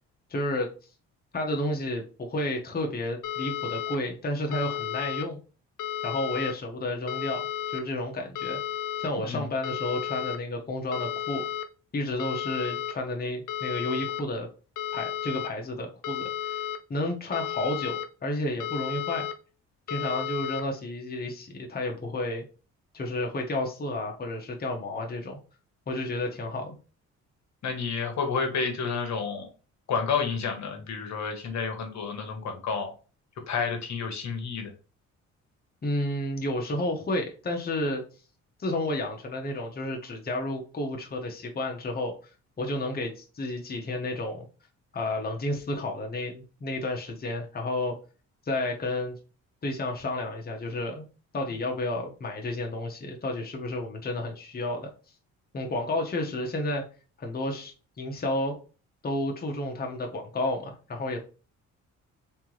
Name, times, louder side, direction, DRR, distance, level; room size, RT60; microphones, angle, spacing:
voice 1, 0.3-0.7 1.3-5.4 6.0-7.5 7.7-8.6 9.0-11.4 11.9-14.5 14.9-19.3 19.9-22.4 22.9-25.4 25.9-26.8 35.8-38.0 38.6-42.1 42.6-44.5 44.9-48.0 48.5-49.2 49.6-51.1 51.3-54.9 55.5-56.9 57.2-58.6 59.0-61.2, left 1 dB, 30° left, 1 dB, 1.1 m, -31 dB
sound 1, 3.2-4.0 4.5-5.2 5.8-6.5 7.1-7.8 8.4-9.1 9.6-10.4 10.9-11.7 12.2-12.9 13.5-14.2 14.8-15.5 16.0-16.8 17.3-18.1 18.6-19.3 19.9-20.6, left 10 dB, 85° left, 0.6 m, -33 dB
voice 2, 27.6-29.5 29.9-32.9 33.5-34.7, left 5 dB, 65° left, 4 dB, 1.2 m, -30 dB
3.5 x 3.5 x 3.2 m, 0.35 s
cardioid pair, 90°, 30 cm